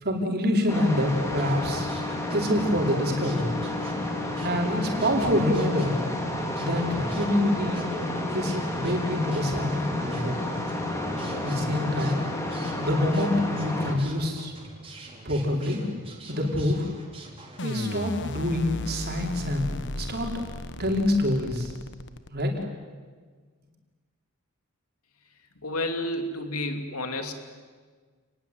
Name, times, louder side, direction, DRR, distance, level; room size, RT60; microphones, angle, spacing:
voice 1, 0.0-1.9 2.3-3.5 4.4-6.0 6.6-7.8 8.3-10.3 11.4-12.2 12.8-14.5 15.3-15.8 16.3-16.9 17.6-20.4 20.8-21.7 22.3-22.5, left 1 dB, 45° right, 1 dB, 5.2 m, -26 dB
sound 1, 0.7-13.9, left 1 dB, 15° left, 3.6 m, -31 dB
sound 2, 1.1-17.7, right 2 dB, 25° right, 4.4 m, -46 dB
sound 3, 17.6-22.6, left 2 dB, 55° left, 1.2 m, -36 dB
voice 2, 25.6-27.3, left 1 dB, 80° left, 6 dB, 3.0 m, -30 dB
29.5 x 20.0 x 9.5 m, 1.5 s
head